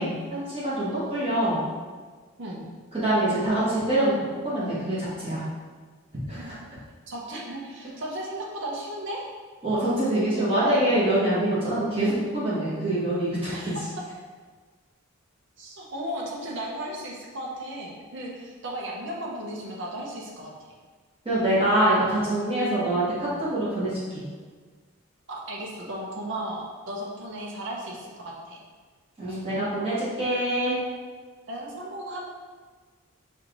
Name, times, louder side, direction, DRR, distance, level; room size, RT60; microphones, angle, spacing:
voice 1, 0.0-1.6 2.9-4.1 4.4-5.4 6.3-6.5 9.6-13.5 21.2-24.2 29.2-30.8, right 1 dB, 25° right, -10 dB, 1.2 m, -25 dB
voice 2, 2.4-2.7 6.3-6.6 7.1-9.3 13.5-13.8 15.6-20.5 25.3-28.6 31.5-32.2, right 1 dB, 60° right, -3 dB, 0.7 m, -35 dB
5.6 x 2.5 x 3.0 m, 1.5 s
head